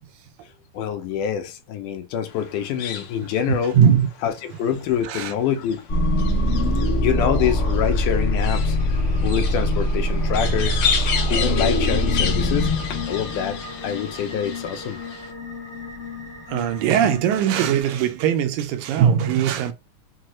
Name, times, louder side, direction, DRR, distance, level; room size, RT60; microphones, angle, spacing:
voice 1, 0.7-3.8 4.2-5.8 7.0-8.8 9.2-10.8 11.3-12.7 13.1-15.0, left 9 dB, 85° left, 2.1 m, -25 dB
sound 1, 2.3-15.3, left 7 dB, 70° left, 1.4 m, -32 dB
voice 2, 3.7-4.1 5.0-5.3 16.5-19.7, right 9 dB, 80° right, 1.9 m, -20 dB
sound 2, 5.9-17.8, left 1 dB, 40° left, 1.1 m, -24 dB
5.8 x 2.3 x 3.0 m
omnidirectional pair, 3.6 m